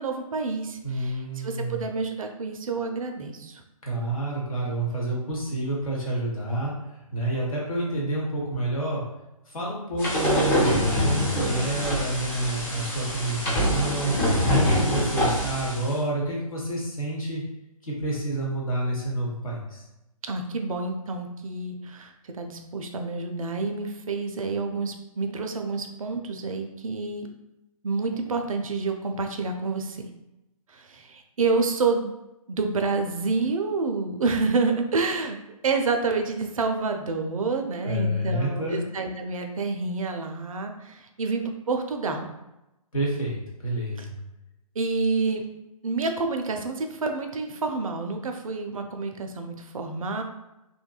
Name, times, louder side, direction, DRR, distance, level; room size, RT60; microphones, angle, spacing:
voice 1, 0.0-3.6 20.2-27.3 27.8-30.1 30.7-32.1 32.5-35.4 35.6-42.3 44.0-44.1 44.8-45.4 45.8-50.2, right 4 dB, 65° right, 5 dB, 0.4 m, -28 dB
voice 2, 0.8-1.8 3.8-6.7 7.1-9.0 9.5-14.1 14.4-17.4 17.8-19.8 37.8-38.8 42.9-44.1, right 1 dB, 70° left, -4 dB, 1.0 m, -28 dB
sound 1, 10.0-15.9, equal, 15° left, 0.5 m, -25 dB
2.6 x 2.2 x 2.2 m, 0.93 s
figure-of-eight pair, 135°, 19 cm